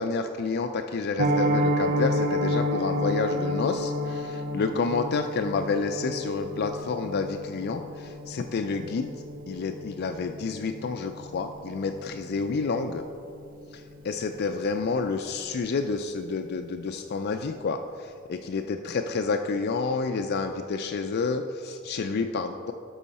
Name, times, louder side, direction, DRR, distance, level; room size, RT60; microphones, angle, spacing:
voice 1, 0.0-9.1 9.5-13.0 13.7-22.7, left 4 dB, 50° left, 6 dB, 0.4 m, -29 dB
Piano, 1.2-12.1 12.3-12.6 12.9-13.0 13.4-13.6 13.9-14.0, equal, 40° right, 0.6 m, -30 dB
12.5 x 5.5 x 4.1 m, 2.4 s
head